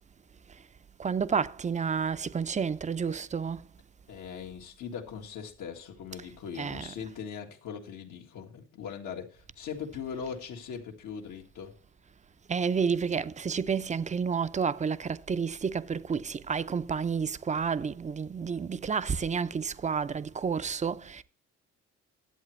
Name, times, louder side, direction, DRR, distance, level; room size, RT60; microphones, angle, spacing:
voice 1, 1.0-3.6 6.6-6.9 12.5-21.2, right 6 dB, 25° right, 0.5 m, -30 dB
voice 2, 4.1-11.8, left 7 dB, 85° left, 1.7 m, -40 dB
11.0 x 7.9 x 3.1 m
cardioid pair, 90°, 30 cm